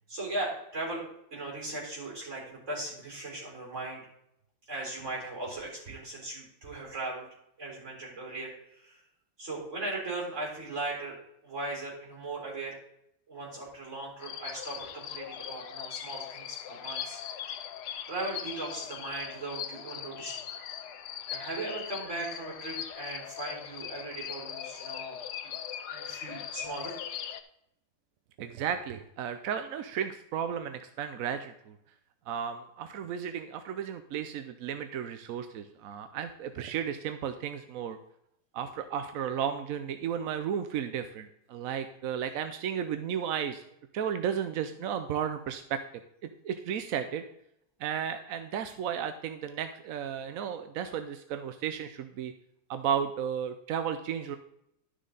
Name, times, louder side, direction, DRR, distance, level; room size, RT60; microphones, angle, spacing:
voice 1, 0.1-4.0 4.7-7.3 7.6-9.0 9.4-11.2 11.4-12.8 13.3-17.6 18.1-20.4 21.3-25.2 25.9-27.0, right 2 dB, 40° right, -3 dB, 4.4 m, -38 dB
sound 1, 14.2-27.4, left 9 dB, 70° left, 1.3 m, -40 dB
voice 2, 28.4-31.8 32.3-38.0 38.5-43.6 43.9-45.8 46.4-47.2 47.8-52.3 52.7-54.4, right 8 dB, 65° right, 9 dB, 0.9 m, -34 dB
11.5 x 6.4 x 3.9 m, 0.76 s
omnidirectional pair, 1.9 m